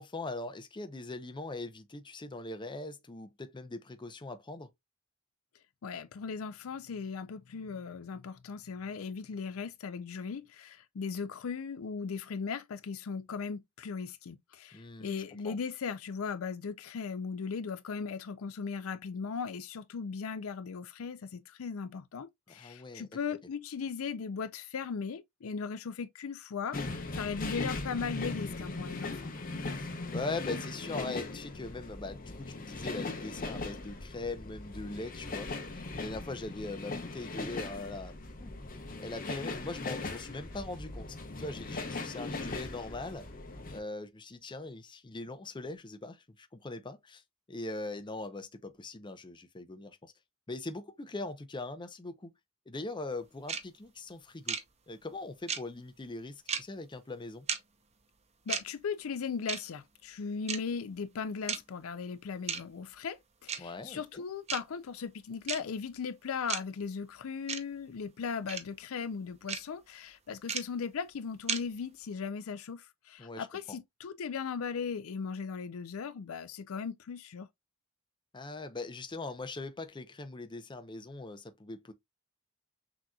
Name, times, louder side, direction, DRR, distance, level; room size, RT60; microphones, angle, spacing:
voice 1, 0.0-4.7 14.7-15.6 22.5-23.1 29.7-38.1 38.4-38.5 39.0-43.3 43.7-47.2 47.5-50.1 50.5-52.3 52.7-54.6 54.9-57.5 63.6-64.2 73.2-73.8 78.3-81.9, left 2 dB, 20° left, 0.6 m, -41 dB
voice 2, 5.8-29.3 58.5-77.5, left 5 dB, 75° left, 0.5 m, -38 dB
sound 1, 26.7-43.8, left 3 dB, 40° left, 0.9 m, -39 dB
sound 2, 53.5-53.6 54.5-54.6 55.5-55.6 56.5-56.6 57.5-57.6 58.5-58.6 59.5-59.6 60.5-60.6 61.5-61.6 62.5-62.6 63.5-63.6 64.5-64.6 65.5-65.6 66.5-66.6 67.5-67.6 68.5-68.6 69.5-69.6 70.5-70.6 71.5-71.6, right 7 dB, 30° right, 0.7 m, -32 dB
6.2 x 2.9 x 2.3 m
head